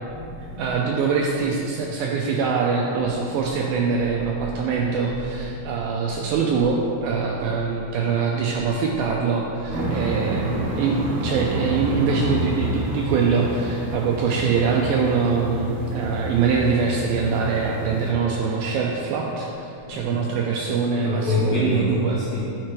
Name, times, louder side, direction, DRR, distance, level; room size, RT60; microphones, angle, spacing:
voice 1, 0.1-0.7 5.7-5.8 19.9-20.2 21.0-22.4, left 3 dB, 65° left, -10 dB, 1.6 m, -27 dB
voice 2, 0.6-22.2, right 5 dB, 85° right, -1 dB, 2.1 m, -23 dB
sound 1, 9.7-18.1, right 2 dB, 65° right, 1.9 m, -28 dB
9.0 x 4.9 x 4.7 m, 2.7 s
omnidirectional pair, 4.6 m